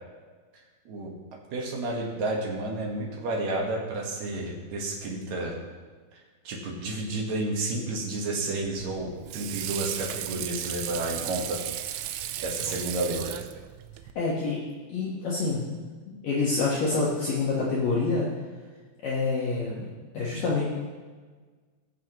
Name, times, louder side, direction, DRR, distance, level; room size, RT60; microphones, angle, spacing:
voice 1, 1.5-5.6 6.4-11.6 11.9-12.1 12.4-13.4, right 2 dB, 65° right, -2 dB, 1.8 m, -31 dB
Water / Sink (filling or washing), 8.6-14.1, right 12 dB, 85° right, 2.9 m, -35 dB
voice 2, 14.2-14.6 14.9-18.3 19.0-19.9 20.1-20.6, left 3 dB, 60° left, -7 dB, 2.6 m, -27 dB
20.0 x 7.0 x 3.1 m, 1.4 s
omnidirectional pair, 5.4 m